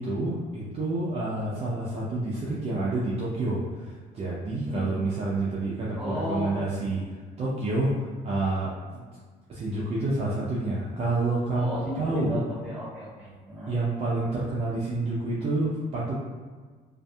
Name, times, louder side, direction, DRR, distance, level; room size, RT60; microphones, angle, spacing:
voice 1, 0.0-7.0 7.4-9.0 9.5-12.4 13.7-16.1, right 2 dB, 40° right, -7 dB, 0.5 m, -28 dB
voice 2, 4.6-4.9 6.0-6.5 11.5-13.7, equal, 5° right, -8 dB, 1.2 m, -34 dB
2.6 x 2.5 x 2.2 m, 1.5 s
cardioid pair, 110°, 17 cm